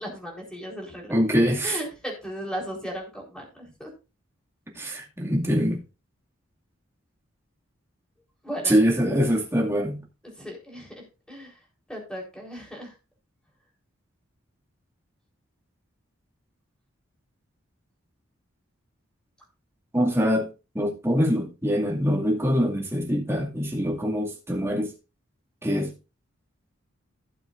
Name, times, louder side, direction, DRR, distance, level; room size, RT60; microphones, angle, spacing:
voice 1, 0.0-1.2 1.6-3.9 8.4-8.9 10.4-11.5 11.9-12.9, equal, 5° left, 4.1 m, -36 dB
voice 2, 1.1-1.8 4.8-5.8 8.6-10.0 19.9-20.5 20.7-24.9 25.6-25.9, equal, 10° right, 2.3 m, -24 dB
16.5 x 7.0 x 2.6 m
head